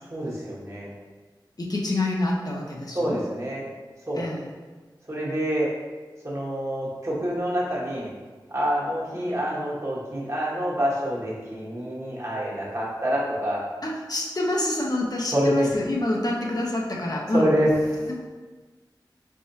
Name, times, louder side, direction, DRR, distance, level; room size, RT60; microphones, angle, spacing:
voice 1, 0.1-0.9 2.9-3.6 4.1-4.2 5.1-5.7 6.2-8.1 8.5-13.6 15.3-15.7 17.3-18.1, equal, 35° right, -6 dB, 1.3 m, -26 dB
voice 2, 1.6-3.2 4.1-4.5 13.8-17.4 18.1-18.2, left 1 dB, 50° left, -2 dB, 0.7 m, -27 dB
4.3 x 3.5 x 2.7 m, 1.4 s
wide cardioid pair, 45°, 8 cm